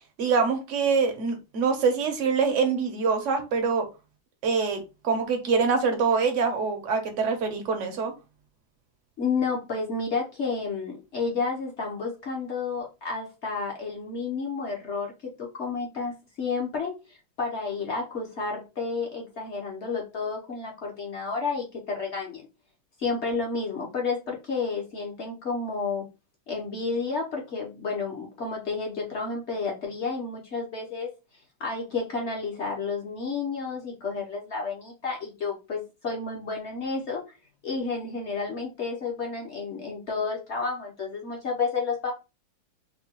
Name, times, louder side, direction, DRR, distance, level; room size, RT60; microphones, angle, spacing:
voice 1, 0.0-3.8 4.4-8.1, right 5 dB, 65° right, 0.7 m, -25 dB
voice 2, 9.2-22.5 23.0-26.1 26.5-31.1 31.6-37.2 37.6-42.1, left 4 dB, 55° left, 0.7 m, -31 dB
4.5 x 2.2 x 2.9 m
omnidirectional pair, 2.2 m